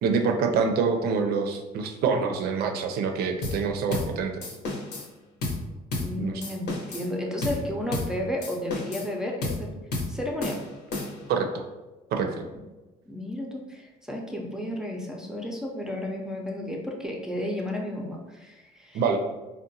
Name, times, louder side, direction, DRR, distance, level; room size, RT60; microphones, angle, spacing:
voice 1, 0.0-4.4 6.2-6.4 11.3-11.6 12.1-12.5 18.9-19.2, right 5 dB, 65° right, 4 dB, 0.4 m, -26 dB
sound 1, 3.4-3.6 3.9-4.1 4.4-5.1 5.4-5.6 5.9-6.1 6.4-7.1 7.4-7.6 7.9-8.1 8.4-9.1 9.4-9.6 9.9-10.1 10.4-11.3, left 2 dB, 70° left, 0.8 m, -31 dB
voice 2, 6.0-9.8 10.1-10.6 13.1-19.0, left 1 dB, 5° right, -1 dB, 0.4 m, -32 dB
3.7 x 2.1 x 2.7 m, 1.1 s
cardioid pair, 110°, 17 cm